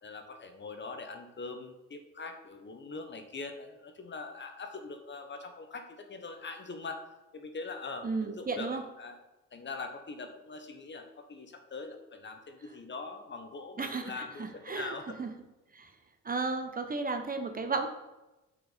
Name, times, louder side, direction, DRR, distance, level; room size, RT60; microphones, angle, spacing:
voice 1, 0.0-7.0 7.3-9.2 9.5-15.2, left 3 dB, 40° left, 6 dB, 1.1 m, -42 dB
voice 2, 8.0-8.8 13.8-14.9 15.2-15.3 15.7-15.9 16.2-17.9, right 4 dB, 30° right, 6 dB, 0.9 m, -34 dB
6.4 x 6.0 x 5.1 m, 1.0 s
cardioid pair, 90°, 30 cm